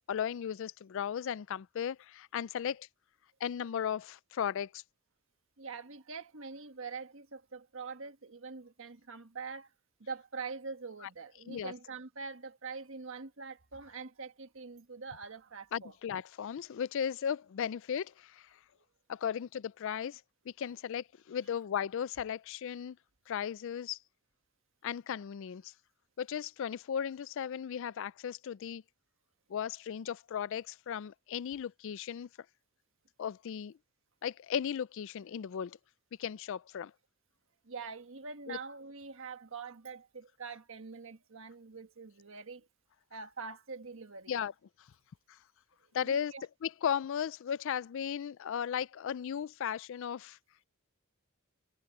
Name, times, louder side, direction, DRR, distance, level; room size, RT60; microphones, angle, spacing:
voice 1, 0.0-2.9 3.4-4.8 11.5-11.7 15.7-18.5 19.1-20.2 20.5-23.0 23.3-24.0 24.8-25.7 26.2-28.8 29.5-32.3 33.2-33.7 34.2-35.8 36.2-36.9 38.5-38.6 44.3-44.5 45.3-45.4 45.9-46.3 46.6-50.4, left 8 dB, 60° left, 0.4 m, -36 dB
voice 2, 5.6-9.7 10.0-15.9 37.6-42.6 43.1-44.3 46.0-46.4, right 4 dB, 65° right, 1.5 m, -44 dB
head